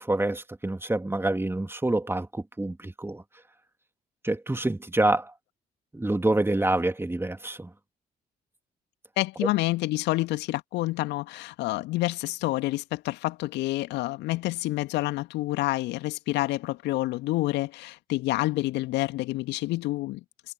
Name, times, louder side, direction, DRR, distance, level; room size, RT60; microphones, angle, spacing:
voice 1, 0.0-3.2 4.2-5.3 5.9-7.7, right 2 dB, 10° right, 2.6 m, -27 dB
voice 2, 9.2-20.2, left 18 dB, 65° left, 2.4 m, -28 dB
figure-of-eight pair, 40°, 20 cm